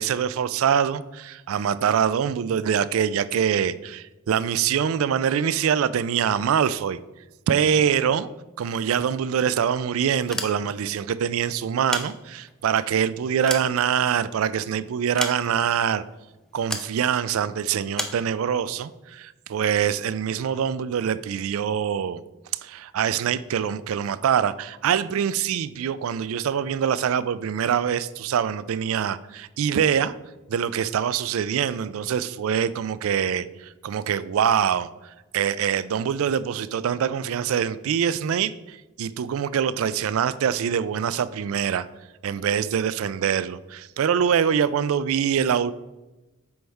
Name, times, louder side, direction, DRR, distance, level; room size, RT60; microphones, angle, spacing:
voice 1, 0.0-7.0 7.5-8.3 8.6-16.0 16.5-22.2 22.5-30.1 30.5-34.9 35.3-41.9 42.2-45.7, right 8 dB, 80° right, 16 dB, 0.3 m, -24 dB
sound 1, 10.2-11.0 11.7-12.7 13.1-14.4 15.2-15.8 16.7-17.0 17.9-18.3, left 1 dB, 5° left, 0.3 m, -32 dB
7.8 x 5.3 x 3.5 m, 1.1 s
head